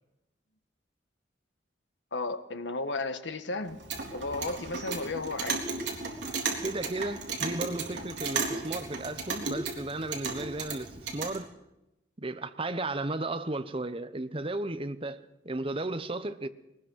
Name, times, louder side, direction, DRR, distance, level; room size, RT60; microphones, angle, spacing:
voice 1, 2.1-3.8 4.1-5.6, left 3 dB, 75° left, 1.5 m, -34 dB
Clock, 3.7-11.4, right 4 dB, 65° right, 3.8 m, -35 dB
voice 2, 6.6-11.5 12.2-16.5, right 2 dB, 30° right, 1.0 m, -34 dB
21.5 x 19.5 x 6.4 m
head